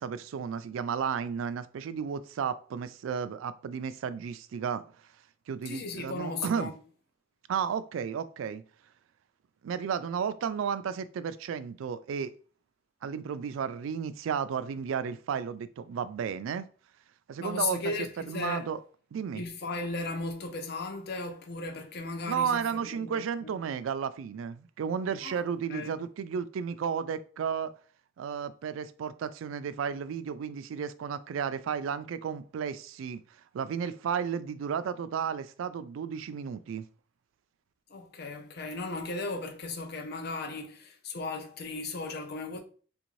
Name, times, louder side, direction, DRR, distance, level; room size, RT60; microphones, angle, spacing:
voice 1, 0.0-4.8 5.5-6.7 7.5-8.6 9.6-12.3 13.0-16.6 17.3-18.8 19.1-19.4 22.3-27.7 28.2-33.2 33.5-36.8, right 7 dB, 85° right, 0.3 m, -33 dB
voice 2, 5.7-6.7 17.4-18.7 19.3-23.6 25.2-25.4 25.7-25.9 37.9-42.6, left 3 dB, 55° left, 0.6 m, -36 dB
3.4 x 2.6 x 3.1 m
head